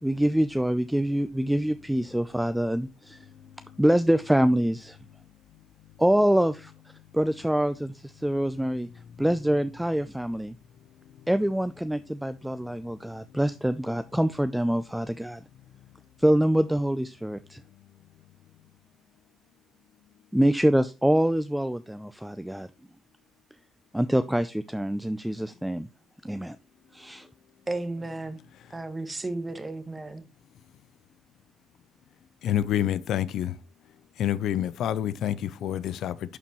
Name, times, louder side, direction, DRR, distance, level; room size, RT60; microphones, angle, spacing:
voice 1, 0.0-3.2 3.8-5.0 6.0-6.7 7.1-8.9 9.2-10.5 11.3-15.4 16.2-17.6 20.3-22.7 23.9-25.9 26.2-26.6 26.9-27.3, right 1 dB, 5° right, 0.4 m, -25 dB
voice 2, 27.7-28.4 28.7-30.2, right 2 dB, 20° right, 1.2 m, -33 dB
voice 3, 32.4-33.6 34.2-36.4, left 11 dB, 80° left, 0.5 m, -28 dB
11.0 x 4.3 x 3.0 m
cardioid pair, 90°, 0 cm